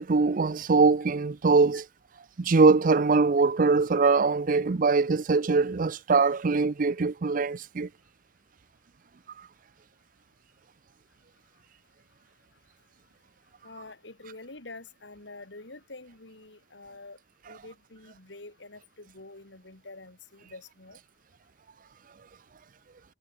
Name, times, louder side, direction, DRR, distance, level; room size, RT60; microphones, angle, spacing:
voice 1, 0.0-1.8 2.4-7.9, right 4 dB, 50° right, 0.5 m, -22 dB
voice 2, 13.6-17.2 17.5-21.0, left 2 dB, 85° left, 3.5 m, -47 dB
head